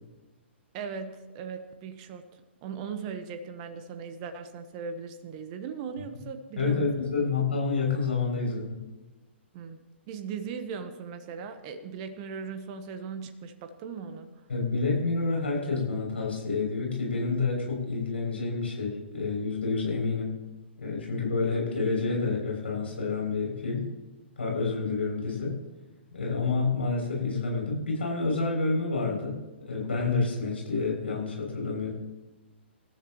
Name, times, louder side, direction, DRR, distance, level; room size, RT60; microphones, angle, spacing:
voice 1, 0.7-7.4 9.5-9.8 10.1-14.3, right 6 dB, 35° right, 9 dB, 1.3 m, -38 dB
voice 2, 6.6-8.8 14.5-20.3 20.8-23.9 24.4-25.6 26.1-31.9, left 4 dB, 65° left, -1 dB, 7.1 m, -28 dB
27.5 x 13.5 x 3.1 m, 1.2 s
figure-of-eight pair, 115°, 6 cm